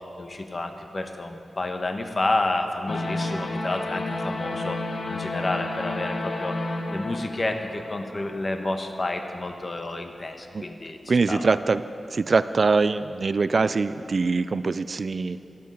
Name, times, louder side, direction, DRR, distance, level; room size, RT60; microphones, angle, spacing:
voice 1, 0.2-4.8 5.1-6.6 6.9-11.4, left 2 dB, 40° left, 5 dB, 1.1 m, -30 dB
sound 1, 2.9-8.9, left 2 dB, 65° left, 1.2 m, -31 dB
voice 2, 11.1-11.8 12.1-15.4, right 4 dB, 55° right, 14 dB, 0.3 m, -23 dB
12.5 x 12.5 x 5.5 m, 2.7 s
wide cardioid pair, 85°, 0 cm